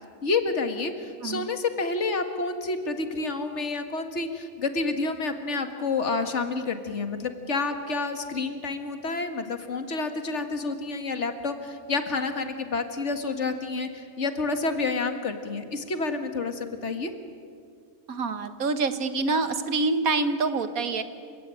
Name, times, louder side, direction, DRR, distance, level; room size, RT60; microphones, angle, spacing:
voice 1, 0.2-17.1, left 3 dB, 55° left, 7 dB, 2.1 m, -29 dB
voice 2, 1.2-1.5 18.1-21.0, right 3 dB, 85° right, 10 dB, 1.8 m, -26 dB
28.5 x 17.0 x 10.0 m, 2.3 s
omnidirectional pair, 1.5 m